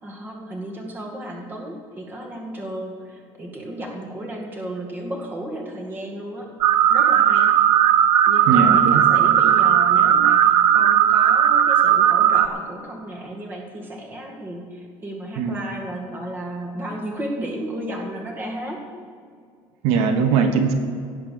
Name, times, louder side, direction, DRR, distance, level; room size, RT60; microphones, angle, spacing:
voice 1, 0.0-6.5 6.9-7.5 8.3-18.9, right 1 dB, 20° right, 0 dB, 2.1 m, -33 dB
sound 1, 6.6-12.5, right 10 dB, 45° right, 0.5 m, -16 dB
voice 2, 8.5-9.0 15.4-15.6 19.8-20.7, right 5 dB, 75° right, 6 dB, 1.3 m, -20 dB
17.0 x 7.5 x 6.8 m, 2.2 s
cardioid pair, 170°, 10 cm